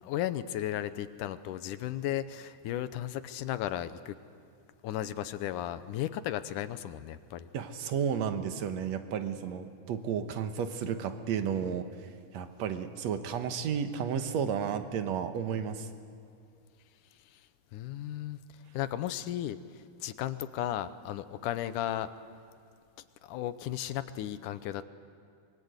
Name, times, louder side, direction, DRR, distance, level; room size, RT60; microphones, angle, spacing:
voice 1, 0.0-4.2 4.8-7.5 17.3-17.4 17.7-18.4 18.7-22.1 23.2-24.8, left 12 dB, 80° left, 12 dB, 2.3 m, -35 dB
voice 2, 7.5-11.9 12.3-15.9, right 7 dB, 65° right, 8 dB, 2.3 m, -32 dB
25.0 x 23.0 x 8.0 m, 2.5 s
omnidirectional pair, 3.6 m